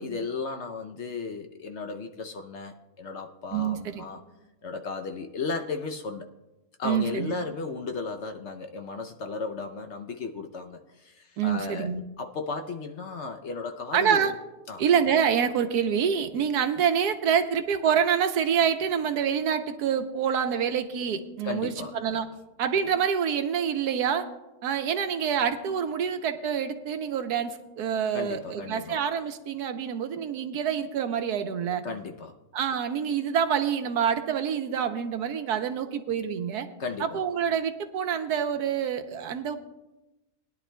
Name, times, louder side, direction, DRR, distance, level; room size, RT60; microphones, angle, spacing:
voice 1, 0.0-4.2 4.6-6.3 6.8-11.9 12.2-14.3 14.7-14.8 21.4-21.9 28.1-29.0 31.8-32.3 36.8-37.2, left 4 dB, 60° left, 5 dB, 0.8 m, -35 dB
voice 2, 3.5-4.0 6.8-7.3 11.4-12.0 13.9-14.3 14.8-22.3 22.6-24.3 24.6-31.8 32.5-36.7 37.0-39.6, right 8 dB, 85° right, 8 dB, 1.3 m, -26 dB
20.5 x 10.5 x 2.2 m, 1.0 s
omnidirectional pair, 1.7 m